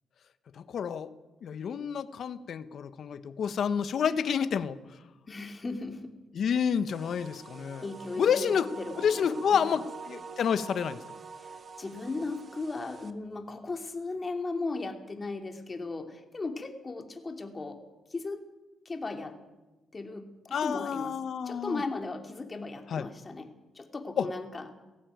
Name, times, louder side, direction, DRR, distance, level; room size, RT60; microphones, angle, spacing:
voice 1, 0.7-1.1 1.4-4.8 6.3-7.9 8.2-8.7 9.0-11.0 20.5-21.8 22.9-23.1 24.2-24.3, left 7 dB, 60° left, 12 dB, 1.2 m, -29 dB
voice 2, 5.3-6.1 7.8-9.8 11.4-17.8 18.1-18.4 18.8-19.4 19.9-21.1 21.4-24.8, left 3 dB, 30° left, 5 dB, 2.9 m, -37 dB
sound 1, 6.9-13.1, right 5 dB, 45° right, 1.6 m, -46 dB
18.5 x 15.0 x 9.4 m, 1.1 s
cardioid pair, 85°, 0 cm